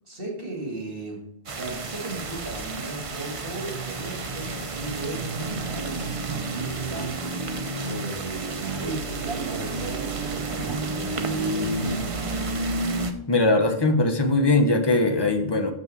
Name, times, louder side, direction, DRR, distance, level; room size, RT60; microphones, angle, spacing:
voice 1, 0.1-1.2 1.5-7.1 7.7-12.5, right 2 dB, 60° right, 0 dB, 2.5 m, -36 dB
sound 1, 1.5-13.1, right 3 dB, 35° right, 0.7 m, -30 dB
voice 2, 13.3-15.7, left 2 dB, 25° left, 6 dB, 0.8 m, -20 dB
6.3 x 5.6 x 6.1 m, 0.74 s
omnidirectional pair, 1.1 m